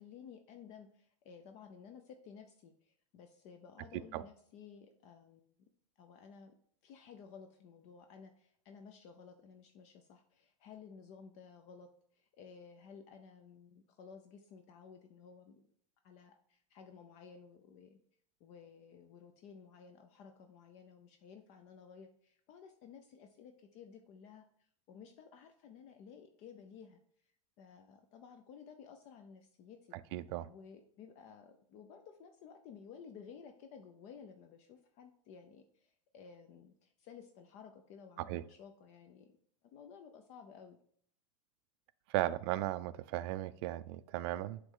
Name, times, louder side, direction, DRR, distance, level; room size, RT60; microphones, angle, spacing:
voice 1, 0.0-5.5 6.0-6.5 6.8-11.9 12.1-15.6 16.0-18.0 18.4-27.0 27.6-30.0 30.4-39.3 39.6-40.8, left 6 dB, 40° left, 6 dB, 0.6 m, -55 dB
voice 2, 30.1-30.5 38.2-38.4 42.1-44.6, right 15 dB, 55° right, 15 dB, 0.4 m, -36 dB
7.9 x 3.2 x 3.7 m, 0.63 s
supercardioid pair, 140°, 16 cm